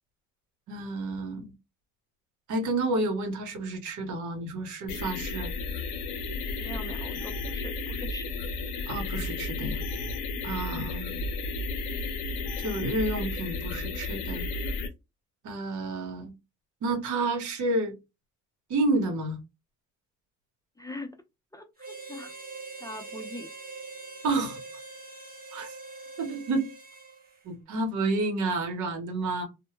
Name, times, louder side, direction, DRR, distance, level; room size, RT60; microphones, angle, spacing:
voice 1, 0.7-1.5 2.5-5.5 8.9-9.8 10.4-11.2 12.6-14.4 15.4-16.3 16.8-18.0 18.7-19.4 24.2-24.6 25.5-25.7 26.2-26.7 27.4-29.4, right 2 dB, 80° right, 1.0 m, -30 dB
sound 1, 4.9-14.9, left 3 dB, 90° left, 0.6 m, -33 dB
voice 2, 6.6-8.3 20.8-21.2 21.5-22.3 22.8-23.5, left 1 dB, 10° left, 0.5 m, -41 dB
Harmonica, 21.8-27.4, right 3 dB, 30° right, 1.0 m, -43 dB
2.1 x 2.1 x 3.0 m
cardioid pair, 90°, 30 cm